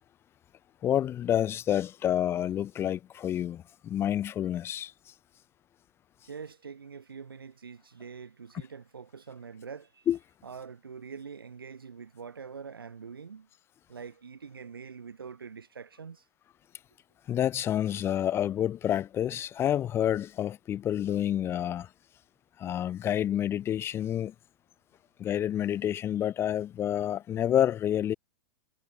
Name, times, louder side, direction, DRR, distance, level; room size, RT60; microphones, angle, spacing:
voice 1, 0.8-4.9 10.1-10.2 17.3-21.9 22.6-24.3 25.2-28.1, left 10 dB, 20° left, 0.3 m, -28 dB
voice 2, 6.2-10.1 10.4-13.5 13.9-16.3, right 6 dB, 85° right, 0.5 m, -44 dB
figure-of-eight pair, 100°, 12 cm